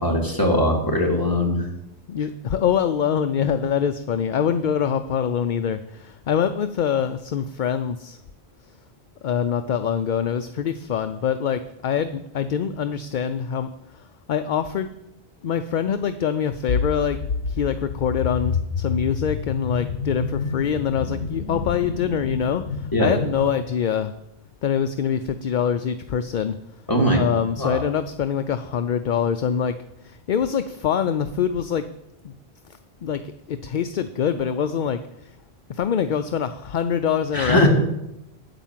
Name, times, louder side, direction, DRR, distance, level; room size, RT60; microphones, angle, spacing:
voice 1, 0.0-1.6 22.9-23.1 26.9-27.2 27.6-27.8 37.3-37.7, equal, 20° left, -1 dB, 2.6 m, -20 dB
voice 2, 2.1-8.2 9.2-13.7 13.9-14.0 14.3-14.9 15.4-17.2 17.5-24.1 24.6-26.6 27.1-29.8 30.0-31.9 32.2-32.3 33.0-35.0 35.7-37.7, left 8 dB, 55° left, 10 dB, 0.6 m, -24 dB
sound 1, 16.7-23.6, left 5 dB, 80° left, 1.0 m, -28 dB
9.2 x 9.1 x 7.4 m, 0.85 s
omnidirectional pair, 1.1 m